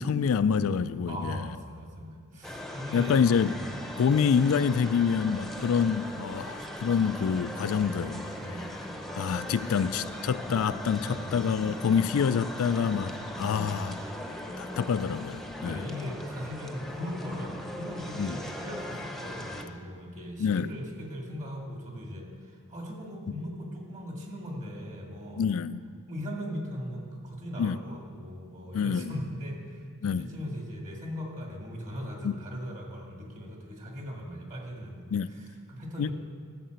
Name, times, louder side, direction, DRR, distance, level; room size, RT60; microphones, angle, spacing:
voice 1, 0.0-1.5 2.9-3.6 4.0-8.3 9.2-13.9 14.6-15.9 18.2-18.4 20.4-20.7 25.4-25.8 27.6-27.8 28.7-29.1 30.0-30.3 32.2-32.4 35.1-35.3 36.0-36.1, left 6 dB, 70° left, 14 dB, 0.4 m, -27 dB
voice 2, 1.1-3.2 3.6-3.8 8.4-8.7 11.1-11.3 13.2-13.8 15.5-25.5 26.1-35.0 35.3-36.1, equal, 35° right, 0 dB, 2.1 m, -39 dB
sound 1, 2.4-19.6, left 1 dB, ahead, 0.8 m, -39 dB
13.0 x 6.7 x 7.9 m, 2.1 s
head